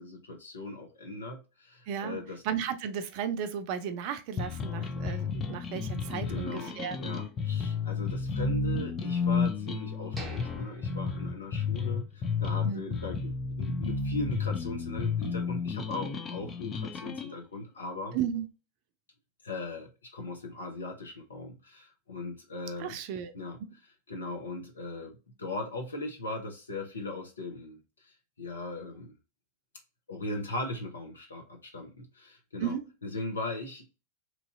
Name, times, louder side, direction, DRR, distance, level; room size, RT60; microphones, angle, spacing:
voice 1, 0.0-2.4 6.3-18.2 19.4-23.0 23.3-23.6 24.1-29.2 30.1-32.8 33.0-33.8, left 2 dB, 75° left, 0.9 m, -39 dB
voice 2, 1.9-7.0 12.6-12.8 18.1-18.5 22.8-23.3 32.6-32.9, right 8 dB, 45° right, 0.5 m, -34 dB
sound 1, 4.4-17.3, left 5 dB, 25° left, 0.5 m, -32 dB
sound 2, 10.2-12.1 12.4-12.5 13.0-13.2, right 2 dB, 10° right, 0.7 m, -48 dB
3.0 x 2.6 x 2.5 m
figure-of-eight pair, 90°, 0 cm